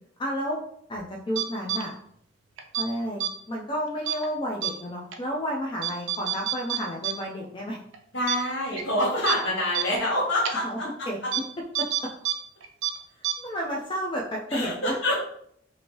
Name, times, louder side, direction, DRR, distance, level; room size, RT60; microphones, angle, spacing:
voice 1, 0.2-0.6 0.9-1.9 2.7-7.8 10.6-10.8 11.1-11.2 11.8-12.1 13.4-14.9, equal, 25° left, -2 dB, 0.4 m, -31 dB
sound 1, 1.4-1.8 2.6-2.9 3.2-3.3 4.1-4.3 4.6-4.7 5.1-5.2 5.8-7.1 7.4-7.5 7.9-8.0 8.3-8.4 8.8-8.9 9.3-9.4 9.7-9.9 10.5-10.6 11.3-11.4 11.8-12.4 12.6-12.9 13.2-13.3, right 11 dB, 85° right, 0.4 m, -27 dB
voice 2, 8.1-11.3 14.5-15.1, left 1 dB, 75° left, -5 dB, 1.4 m, -26 dB
3.0 x 2.5 x 2.9 m, 0.66 s
head